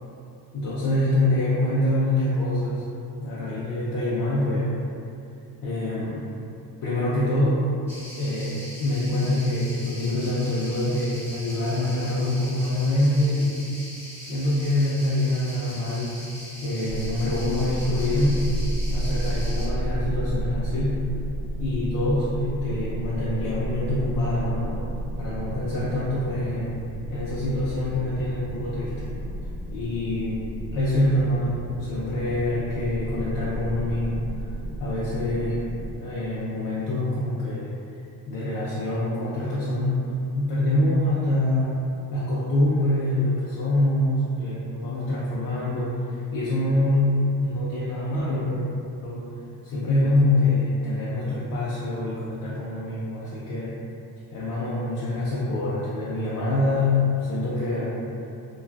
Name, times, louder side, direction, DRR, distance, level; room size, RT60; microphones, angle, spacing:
voice 1, 0.5-2.8 3.2-4.7 5.6-6.3 6.8-7.6 8.1-13.7 14.3-16.1 16.6-18.4 18.9-21.0 21.6-24.9 25.2-26.7 27.1-29.1 29.7-30.4 30.7-34.3 34.8-35.6 36.0-37.7 38.3-41.8 42.1-48.6 49.0-49.3 49.6-53.8 54.3-57.9, left 1 dB, 55° left, -9 dB, 0.5 m, -25 dB
sound 1, 7.9-19.7, equal, 5° left, 0.4 m, -41 dB
sound 2, 16.9-36.0, right 1 dB, 85° right, 0.6 m, -32 dB
3.1 x 2.4 x 2.3 m, 2.6 s
cardioid pair, 160°, 39 cm